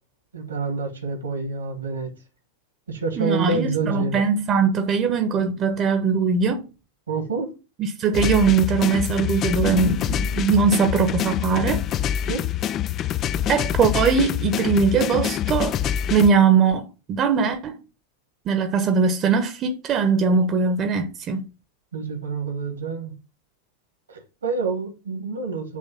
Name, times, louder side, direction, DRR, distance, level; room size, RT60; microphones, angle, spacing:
voice 1, 0.3-2.1 2.9-4.2 7.1-7.5 12.3-12.4 21.9-23.2 24.1-25.8, right 4 dB, 70° right, 1.8 m, -27 dB
voice 2, 3.2-6.6 7.8-11.8 13.5-15.8 16.1-17.8 18.4-21.4, right 5 dB, 30° right, 1.0 m, -21 dB
sound 1, 8.1-16.3, left 10 dB, 30° left, 0.3 m, -25 dB
8.5 x 3.2 x 5.8 m
figure-of-eight pair, 90°, 0 cm